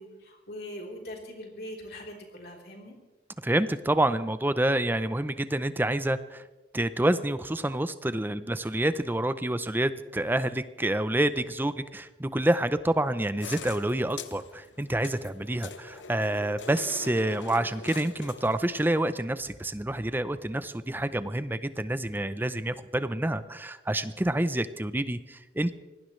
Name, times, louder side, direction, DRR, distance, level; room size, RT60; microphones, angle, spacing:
voice 1, 0.0-2.9, equal, 60° left, 0 dB, 3.6 m, -42 dB
voice 2, 3.4-6.4 6.7-25.7, right 1 dB, 10° right, 13 dB, 0.6 m, -28 dB
sound 1, 13.4-18.9, left 5 dB, 85° left, 1.0 m, -43 dB
24.5 x 18.5 x 3.2 m, 1.1 s
head